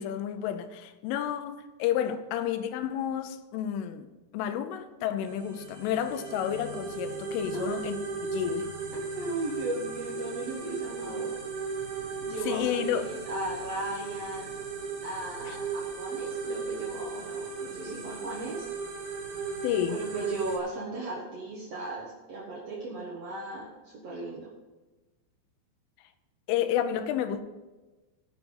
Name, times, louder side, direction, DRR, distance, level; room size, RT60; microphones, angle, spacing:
voice 1, 0.0-4.1 4.3-8.0 8.3-8.7 12.5-13.1 15.5-15.6 19.6-20.0 26.5-27.4, left 10 dB, 80° left, 9 dB, 3.3 m, -30 dB
sound 1, 5.2-20.6, right 4 dB, 45° right, 2.0 m, -36 dB
voice 2, 7.5-7.9 9.1-11.3 12.2-14.5 15.0-18.7 19.3-19.4 19.9-24.5, right 2 dB, 70° right, -5 dB, 1.5 m, -36 dB
16.5 x 6.0 x 5.5 m, 1.2 s
omnidirectional pair, 5.8 m